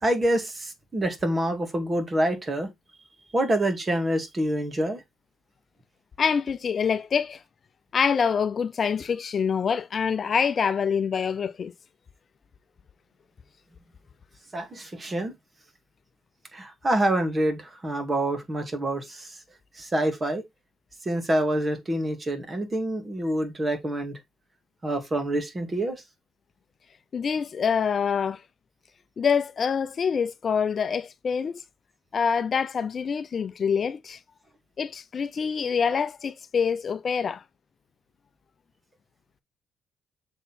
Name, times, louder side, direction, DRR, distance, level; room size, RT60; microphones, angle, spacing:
voice 1, 0.0-2.7 3.3-5.0 14.5-15.3 16.5-19.4 19.7-20.4 21.0-24.2 24.8-26.0, right 1 dB, 25° right, 2.2 m, -26 dB
voice 2, 6.2-7.4 7.9-11.7 27.1-28.4 29.2-31.6 32.1-34.2 34.8-37.4, left 6 dB, 50° left, 0.5 m, -25 dB
6.9 x 4.1 x 4.2 m
cardioid pair, 90°, 0 cm